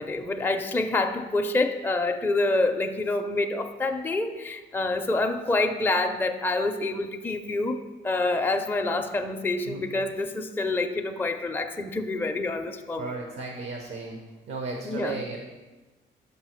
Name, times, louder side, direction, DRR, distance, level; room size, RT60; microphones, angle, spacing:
voice 1, 0.0-7.8 8.0-13.1 14.8-15.1, left 2 dB, 10° left, 4 dB, 0.4 m, -27 dB
voice 2, 13.0-14.2 14.5-15.4, right 3 dB, 75° right, 2 dB, 0.9 m, -34 dB
5.6 x 5.5 x 4.4 m, 1.2 s
cardioid pair, 90°, 20 cm